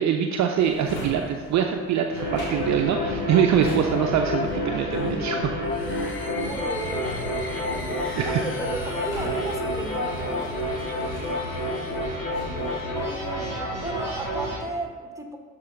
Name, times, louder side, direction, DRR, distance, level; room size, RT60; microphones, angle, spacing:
voice 1, 0.0-5.5 8.2-8.3, right 8 dB, 45° right, 4 dB, 0.6 m, -24 dB
Drawer open or close, 0.6-11.9 12.3-13.6 13.9-14.4, left 1 dB, 45° left, 2.2 m, -42 dB
sound 1, 2.1-14.6, left 1 dB, 90° left, 1.5 m, -29 dB
sound 2, 5.6-12.2, left 3 dB, 30° left, 0.9 m, -42 dB
voice 2, 6.2-10.6 12.9-15.4, right 2 dB, 10° right, 4 dB, 1.1 m, -35 dB
12.0 x 4.4 x 3.8 m, 1.5 s
figure-of-eight pair, 45°, 40 cm